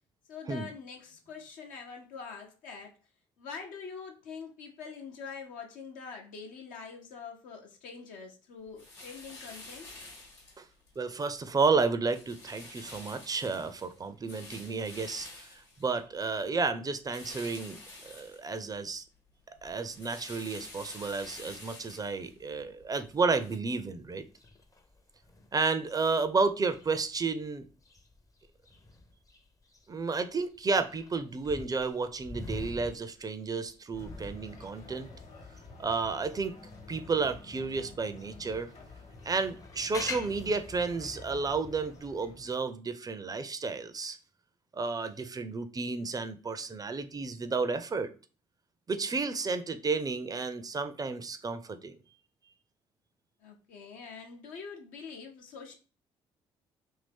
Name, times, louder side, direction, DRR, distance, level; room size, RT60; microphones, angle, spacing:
voice 1, 0.3-2.9 3.4-9.9 53.4-55.8, left 5 dB, 65° left, 0.7 m, -44 dB
sound 1, 8.8-11.0 11.4-11.7 12.1-16.4 17.1-18.9 19.3-23.6, left 2 dB, 85° left, 1.2 m, -49 dB
voice 2, 11.0-15.5 15.8-19.0 19.6-24.2 25.5-27.7 29.9-35.1 35.8-36.6 36.9-38.7 39.2-44.2 44.7-48.1 48.9-51.9, right 4 dB, 25° right, 0.5 m, -32 dB
sound 2, 23.8-37.4 37.9-42.3, left 2 dB, 25° left, 0.6 m, -46 dB
sound 3, 33.9-42.7, left 3 dB, 50° left, 1.2 m, -50 dB
2.8 x 2.7 x 3.3 m
hypercardioid pair, 45°, 15 cm